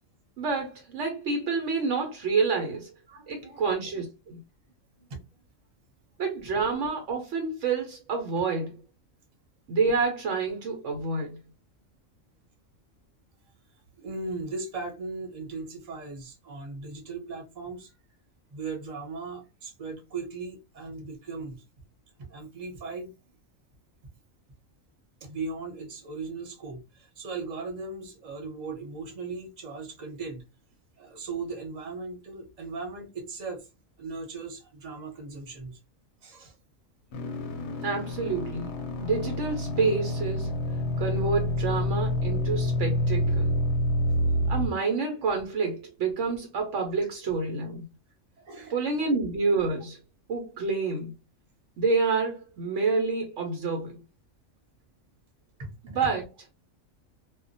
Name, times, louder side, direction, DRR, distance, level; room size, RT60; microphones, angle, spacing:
voice 1, 0.4-2.9 3.3-4.4 6.2-8.7 9.7-11.4 37.8-40.5 41.0-43.6 44.5-47.8 48.7-50.0 50.3-51.1 51.8-54.0 55.8-56.2, right 4 dB, 70° right, 0.9 m, -28 dB
voice 2, 3.1-3.6 5.0-5.2 14.0-17.9 18.5-21.6 22.2-23.1 25.2-30.4 31.0-33.7 34.0-35.8 36.2-36.5 48.4-49.0 55.6-56.1, right 3 dB, 35° right, 0.8 m, -38 dB
sound 1, 37.1-44.7, left 1 dB, 65° left, 0.8 m, -28 dB
2.3 x 2.1 x 2.6 m
omnidirectional pair, 1.4 m